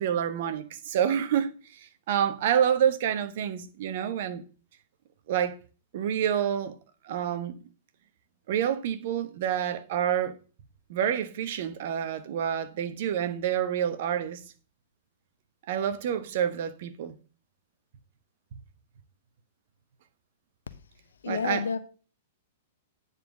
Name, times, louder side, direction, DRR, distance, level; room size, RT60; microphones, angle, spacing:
voice 1, 0.0-4.4 5.3-5.5 5.9-6.8 7.0-7.6 8.5-10.4 10.9-14.4 15.7-17.1 21.3-21.7, right 9 dB, 55° right, 1.0 m, -28 dB
voice 2, 21.2-21.8, left 6 dB, 70° left, 0.7 m, -29 dB
9.4 x 4.1 x 6.2 m
figure-of-eight pair, 105°, 0 cm